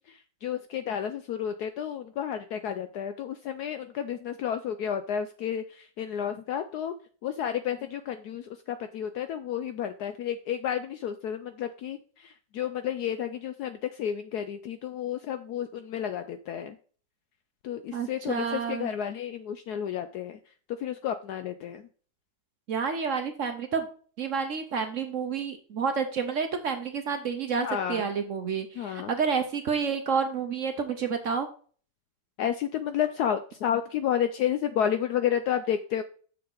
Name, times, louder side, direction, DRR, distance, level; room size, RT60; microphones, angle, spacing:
voice 1, 0.1-6.9 7.2-16.8 17.6-20.4 20.8-21.8 27.6-28.0 28.8-29.1 32.4-36.0, left 9 dB, 70° left, 9 dB, 1.0 m, -31 dB
voice 2, 17.9-18.9 22.7-23.9 24.2-31.5, right 6 dB, 55° right, 7 dB, 0.9 m, -29 dB
6.8 x 6.6 x 3.8 m, 0.43 s
omnidirectional pair, 2.0 m